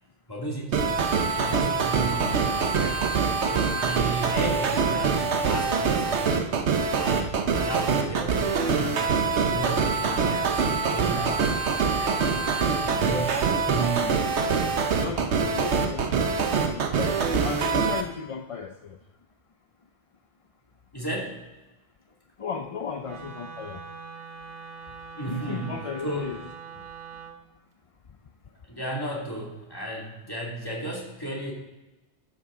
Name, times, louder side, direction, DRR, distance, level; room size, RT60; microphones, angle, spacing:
voice 1, 0.3-0.9 1.3-3.1 3.5-6.2 6.9-11.4 11.8-12.3 12.8-14.3 20.9-21.4 25.2-25.7 26.0-26.3 28.6-31.5, right 2 dB, 20° left, -3 dB, 2.3 m, -34 dB
sound 1, 0.7-18.0, right 5 dB, 90° right, 1.2 m, -24 dB
voice 2, 14.9-16.1 16.7-19.0 22.4-23.8 25.2-26.4, left 6 dB, 45° left, 5 dB, 0.4 m, -35 dB
Wind instrument woodwind instrument, 23.0-27.4, right 5 dB, 55° right, 1.1 m, -42 dB
11.5 x 8.9 x 3.7 m, 1.1 s
omnidirectional pair, 1.1 m